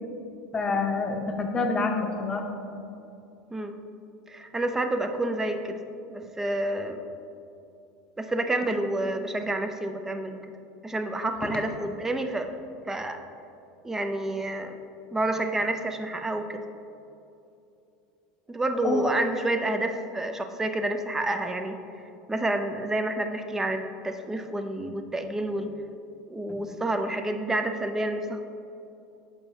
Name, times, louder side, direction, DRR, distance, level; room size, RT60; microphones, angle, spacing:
voice 1, 0.5-2.5 11.4-11.6 18.8-19.0 26.5-26.6, left 3 dB, 25° left, 3 dB, 0.7 m, -27 dB
voice 2, 4.3-5.8 6.1-7.0 8.2-10.4 10.8-12.5 12.9-13.2 13.8-14.8 15.1-16.6 18.5-21.8 22.3-25.7 26.3-28.4, right 2 dB, 15° right, 7 dB, 0.5 m, -29 dB
6.8 x 5.3 x 2.8 m, 2.8 s
hypercardioid pair, 95°, 3 cm